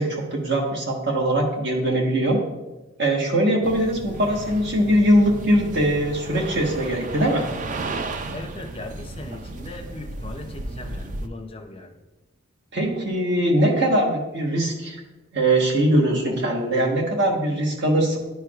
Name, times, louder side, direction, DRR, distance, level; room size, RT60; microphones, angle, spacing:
voice 1, 0.0-2.4 3.0-7.5 12.7-15.0 15.3-18.2, right 1 dB, 60° right, -1 dB, 1.2 m, -21 dB
sound 1, 3.6-11.3, right 3 dB, 40° right, 0.4 m, -34 dB
voice 2, 8.3-12.0, left 2 dB, 30° left, 5 dB, 0.5 m, -38 dB
10.5 x 4.5 x 2.4 m, 1.1 s
head